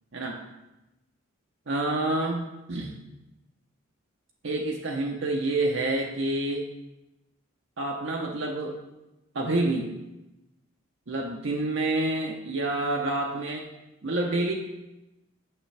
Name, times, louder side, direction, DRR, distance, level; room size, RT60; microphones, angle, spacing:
voice 1, 1.7-2.4 2.7-2.9 4.4-6.6 7.8-8.7 9.3-9.9 11.1-13.6 14.0-14.5, right 2 dB, 60° right, 0 dB, 0.7 m, -28 dB
8.8 x 6.3 x 3.3 m, 0.98 s
head